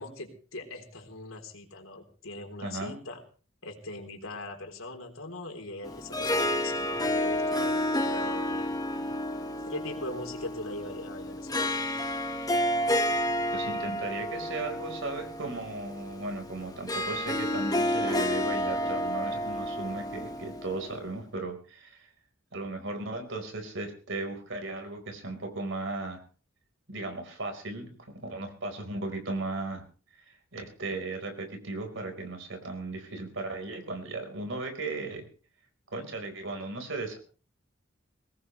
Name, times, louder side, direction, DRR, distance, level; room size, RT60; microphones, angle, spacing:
voice 1, 0.0-3.2 3.6-8.7 9.7-11.9, left 2 dB, 85° left, 3 dB, 3.7 m, -41 dB
voice 2, 2.6-2.9 13.5-22.1 22.5-26.2 26.9-27.9 28.2-29.8 30.2-30.3 30.5-35.2 35.9-37.2, right 2 dB, 70° right, 4 dB, 4.8 m, -36 dB
Harp, 5.8-21.1, left 1 dB, 20° left, 1.6 m, -30 dB
22.0 x 18.0 x 3.3 m, 0.39 s
head